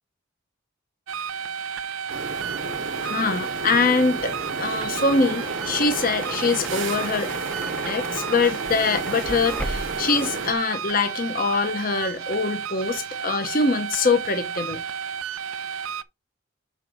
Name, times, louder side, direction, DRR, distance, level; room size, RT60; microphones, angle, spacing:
sound 1, 1.1-16.0, right 7 dB, 80° right, 0.5 m, -32 dB
sound 2, 2.1-10.5, right 3 dB, 65° right, 1.2 m, -33 dB
voice 1, 3.0-7.3 7.7-14.8, left 4 dB, 40° left, 0.9 m, -24 dB
sound 3, 5.0-10.1, equal, 5° left, 0.7 m, -37 dB
5.9 x 4.4 x 6.3 m
head